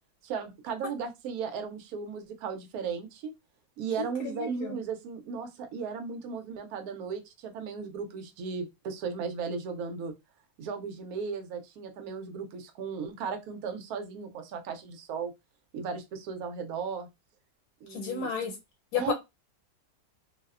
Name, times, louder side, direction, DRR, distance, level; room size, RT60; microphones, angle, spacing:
voice 1, 0.2-3.3 3.8-10.1 10.6-15.3 15.7-17.1 17.8-18.3 18.9-19.1, right 5 dB, 75° right, 1.0 m, -36 dB
voice 2, 4.0-4.8 17.9-18.5 18.9-19.1, left 7 dB, 80° left, 1.2 m, -32 dB
2.7 x 2.1 x 2.3 m
omnidirectional pair, 1.7 m